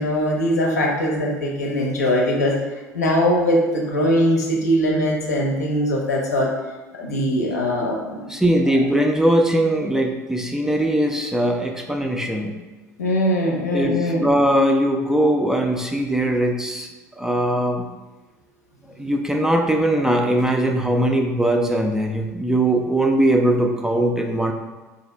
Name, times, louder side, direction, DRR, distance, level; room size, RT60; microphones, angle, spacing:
voice 1, 0.0-2.6 2.9-6.5 6.9-8.3 13.0-14.3, equal, 75° left, -1 dB, 0.7 m, -21 dB
voice 2, 8.3-12.6 13.7-16.9 17.2-17.9 19.0-24.5, right 1 dB, 5° right, 3 dB, 0.3 m, -20 dB
3.8 x 2.8 x 3.1 m, 1.2 s
figure-of-eight pair, 65°, 9 cm